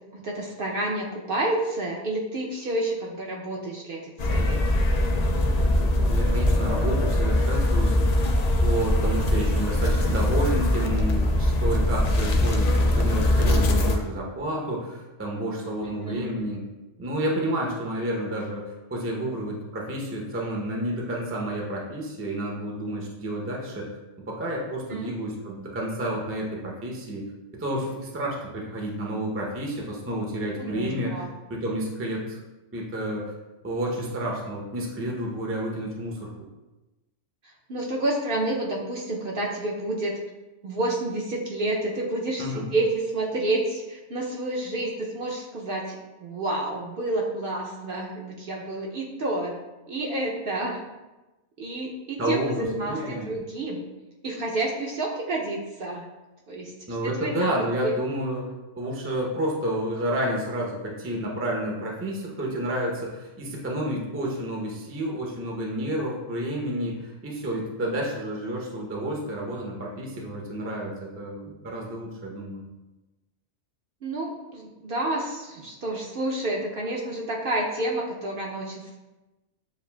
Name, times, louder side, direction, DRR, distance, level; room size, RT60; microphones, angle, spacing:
voice 1, 0.1-4.6 16.0-16.3 24.9-25.1 30.6-31.3 37.7-40.2 40.6-49.6 49.9-50.8 51.6-53.8 54.2-56.0 56.5-56.7 57.0-58.0 74.0-79.0, right 2 dB, 60° right, -2 dB, 0.7 m, -29 dB
sound 1, 4.2-14.0, left 1 dB, 85° left, 0.3 m, -22 dB
voice 2, 6.1-8.0 8.6-16.6 17.0-23.9 24.3-27.3 27.5-32.4 32.7-33.3 33.6-36.3 42.4-42.7 52.2-53.3 56.9-58.5 58.8-72.7, right 1 dB, 15° right, -2 dB, 0.4 m, -30 dB
7.2 x 2.5 x 2.2 m, 1.1 s
omnidirectional pair, 1.2 m